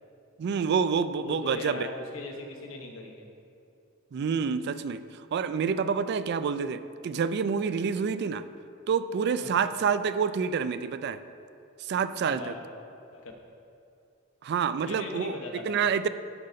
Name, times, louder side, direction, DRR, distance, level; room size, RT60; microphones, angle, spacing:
voice 1, 0.4-1.9 4.1-5.0 5.3-8.4 8.9-11.2 11.8-12.6 14.4-16.1, right 6 dB, 55° right, 13 dB, 0.3 m, -28 dB
voice 2, 1.2-3.3 9.3-9.5 12.2-12.6 13.1-13.3 14.8-15.7, left 2 dB, 85° left, 2 dB, 1.0 m, -39 dB
11.5 x 4.0 x 5.2 m, 2.6 s
head